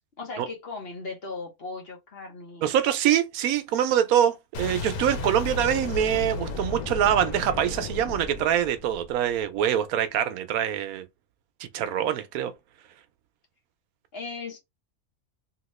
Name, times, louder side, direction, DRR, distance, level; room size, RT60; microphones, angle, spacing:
voice 1, 0.0-2.7 14.1-14.6, left 3 dB, 50° left, 1.1 m, -37 dB
voice 2, 2.6-11.0 11.6-12.5, right 10 dB, 80° right, 1.0 m, -24 dB
Boom, 4.5-9.4, left 3 dB, 85° left, 1.3 m, -34 dB
2.9 x 2.8 x 3.0 m
omnidirectional pair, 1.5 m